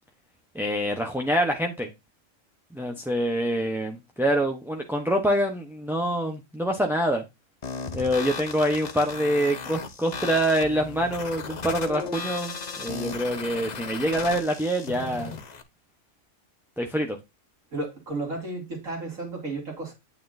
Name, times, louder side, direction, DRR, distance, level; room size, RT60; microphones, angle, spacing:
voice 1, 0.5-1.9 2.7-7.2 7.9-15.3 16.8-17.2, equal, ahead, 0.5 m, -25 dB
sound 1, 7.6-15.6, left 5 dB, 40° left, 0.7 m, -36 dB
voice 2, 17.7-19.9, right 2 dB, 85° right, 3.1 m, -33 dB
9.2 x 5.7 x 2.6 m
omnidirectional pair, 1.4 m